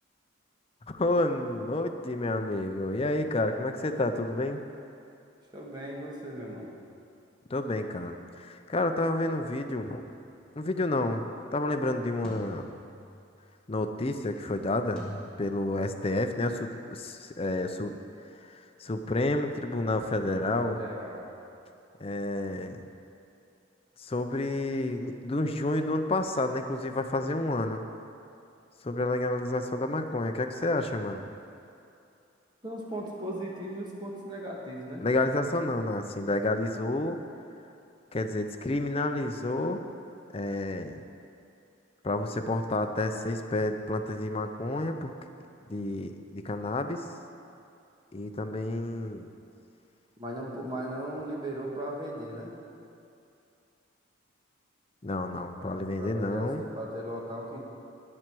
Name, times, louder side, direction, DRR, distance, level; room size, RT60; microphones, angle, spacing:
voice 1, 0.9-4.6 7.5-10.0 10.6-11.2 11.5-12.7 13.7-15.0 15.4-17.9 18.4-20.8 22.0-22.8 24.0-27.8 28.8-31.3 35.0-37.2 38.1-39.8 40.3-41.0 42.0-45.1 45.7-47.0 48.1-49.3 55.0-56.6, left 2 dB, 30° left, 6 dB, 0.5 m, -30 dB
voice 2, 5.5-6.7 20.2-21.3 32.6-35.0 50.2-52.5 55.7-57.6, right 1 dB, 20° right, -2 dB, 1.5 m, -37 dB
sound 1, 10.4-10.7 12.2-13.4 15.0-16.1, equal, 5° left, 1.8 m, -45 dB
10.0 x 7.6 x 6.1 m, 2.6 s
head